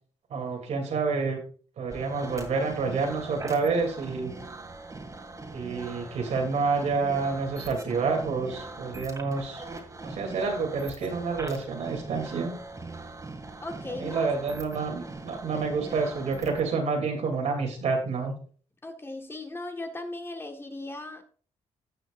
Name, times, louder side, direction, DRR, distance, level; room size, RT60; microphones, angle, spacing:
voice 1, 0.3-1.4 1.8-4.3 5.5-9.6 10.0-12.6 14.0-18.3, right 4 dB, 75° right, 2 dB, 2.9 m, -28 dB
sound 1, 1.9-16.7, right 2 dB, 30° right, 2.2 m, -41 dB
voice 2, 13.6-14.3 15.5-15.6 18.8-21.2, left 2 dB, 20° left, 4 dB, 1.5 m, -38 dB
16.5 x 6.1 x 2.5 m, 0.42 s
cardioid pair, 105°, 12 cm